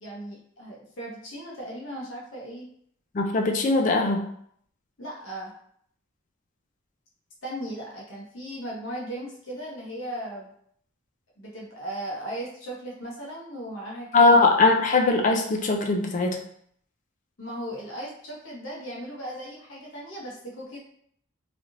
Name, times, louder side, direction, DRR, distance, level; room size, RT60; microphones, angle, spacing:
voice 1, 0.0-2.7 5.0-5.5 7.4-10.5 11.4-14.4 17.4-20.8, right 1 dB, 70° left, -4 dB, 0.9 m, -37 dB
voice 2, 3.1-4.3 14.1-16.4, left 3 dB, 40° left, 3 dB, 0.4 m, -20 dB
3.3 x 2.7 x 2.5 m, 0.65 s
head